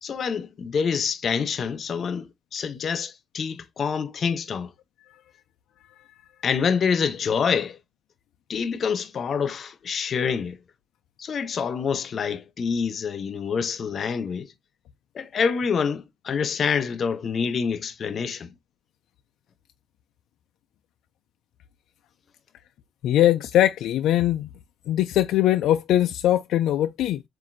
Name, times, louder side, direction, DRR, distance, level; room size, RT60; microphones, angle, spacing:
voice 1, 0.0-4.7 6.4-7.8 8.5-10.6 11.2-14.5 15.1-18.5, left 6 dB, 50° left, 0.7 m, -26 dB
voice 2, 23.0-24.5 24.9-27.2, left 13 dB, 80° left, 0.3 m, -21 dB
7.3 x 2.5 x 2.5 m
cardioid pair, 105°, 0 cm